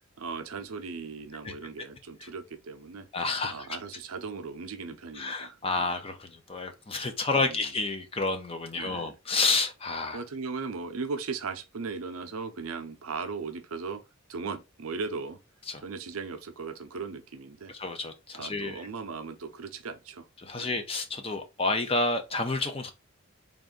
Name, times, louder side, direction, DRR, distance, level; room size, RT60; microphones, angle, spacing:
voice 1, 0.2-3.1 3.5-5.9 7.3-7.7 8.8-9.2 10.1-14.0 14.3-15.4 15.8-17.7 18.3-20.3 20.6-20.7, right 4 dB, 75° right, 0.6 m, -37 dB
voice 2, 3.1-3.7 5.2-10.2 15.7-15.8 17.8-18.8 20.4-22.9, left 3 dB, 25° left, 0.6 m, -30 dB
3.5 x 2.6 x 3.7 m
head